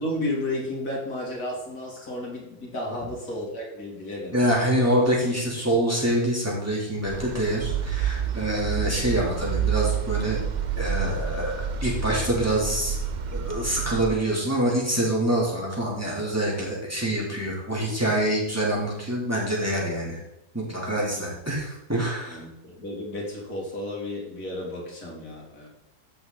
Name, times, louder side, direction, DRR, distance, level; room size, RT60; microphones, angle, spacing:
voice 1, 0.0-4.8 22.3-25.7, left 1 dB, 85° left, -3 dB, 3.2 m, -33 dB
voice 2, 4.3-10.4 10.8-13.0 13.3-20.2 20.5-22.4, right 1 dB, 10° right, -5 dB, 3.1 m, -25 dB
sound 1, 7.1-14.1, right 7 dB, 60° right, 0.4 m, -29 dB
14.5 x 6.1 x 4.0 m, 0.90 s
omnidirectional pair, 1.6 m